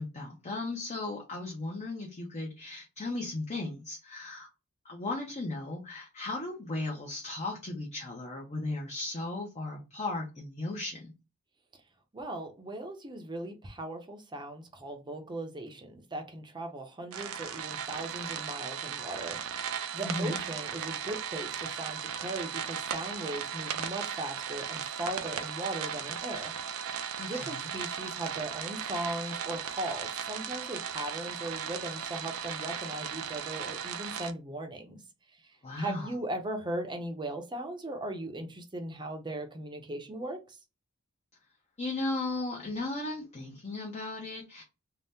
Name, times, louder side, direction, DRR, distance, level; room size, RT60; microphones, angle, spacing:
voice 1, 0.0-4.5 4.8-11.1 20.0-20.4 27.2-27.7 35.6-36.1 41.8-44.6, left 2 dB, 30° left, 0.5 m, -36 dB
voice 2, 12.1-26.5 27.2-35.0 35.8-40.6, right 1 dB, 20° right, 0.6 m, -38 dB
sound 1, 17.1-34.3, right 8 dB, 65° right, 0.4 m, -37 dB
2.7 x 2.1 x 3.4 m
head